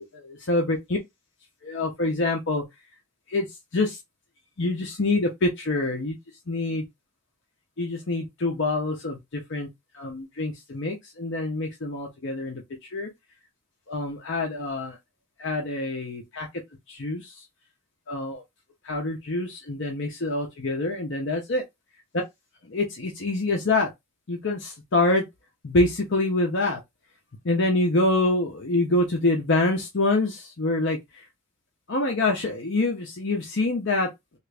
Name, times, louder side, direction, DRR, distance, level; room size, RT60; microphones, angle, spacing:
voice 1, 0.3-0.8 1.6-2.6 3.3-3.5 3.7-4.0 4.6-6.1 6.5-6.8 7.8-9.7 10.0-12.6 12.9-13.1 13.9-15.0 15.4-16.5 16.9-17.2 18.1-18.4 18.9-21.6 22.7-23.9 24.3-25.2 25.6-26.8 27.4-31.0 31.9-34.1, left 2 dB, 55° left, 0.7 m, -25 dB
3.0 x 2.4 x 3.3 m
head